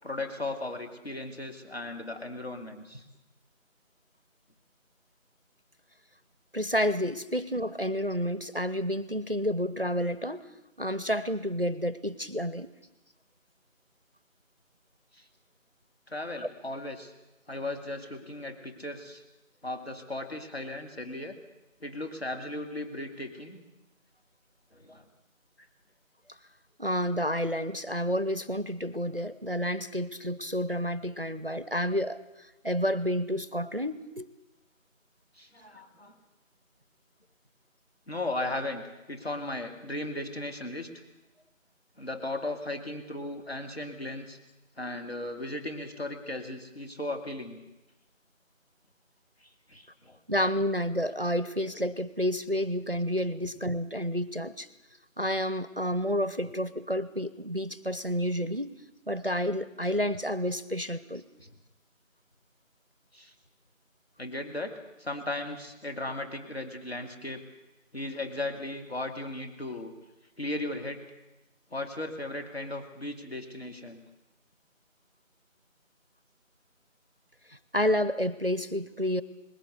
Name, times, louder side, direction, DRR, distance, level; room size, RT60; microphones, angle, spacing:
voice 1, 0.0-3.0 15.1-15.2 16.1-17.1 17.5-19.2 19.6-21.4 21.8-23.6 24.7-25.0 35.4-36.2 38.1-41.0 42.0-44.4 44.8-47.6 49.4-50.2 53.4-53.5 61.4-61.5 63.1-63.3 64.2-67.4 67.9-69.9 70.4-71.1 71.7-74.0, left 2 dB, 50° left, 4 dB, 2.7 m, -36 dB
voice 2, 6.5-10.4 10.8-12.7 26.8-34.3 50.3-54.7 55.2-58.8 59.1-61.2 77.5-79.2, equal, 45° right, 16 dB, 0.8 m, -30 dB
20.5 x 17.0 x 8.3 m, 1.0 s
figure-of-eight pair, 175°, 40 cm